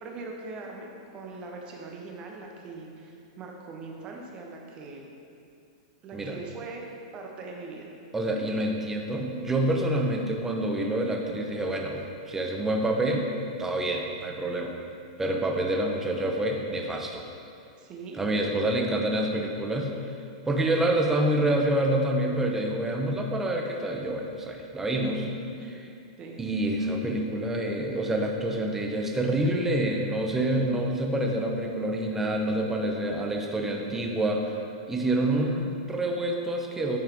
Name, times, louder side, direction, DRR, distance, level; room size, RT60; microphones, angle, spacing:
voice 1, 0.0-5.0 6.0-6.8 7.1-7.9 17.8-18.2 25.6-25.7 26.2-26.4, right 3 dB, 35° right, 0 dB, 1.4 m, -41 dB
voice 2, 8.1-13.3 13.6-14.7 15.2-17.2 18.1-19.9 20.5-25.2 26.4-34.6 34.9-37.0, right 1 dB, 10° right, 1 dB, 1.0 m, -27 dB
11.0 x 4.8 x 4.7 m, 2.5 s
hypercardioid pair, 120°, 3 cm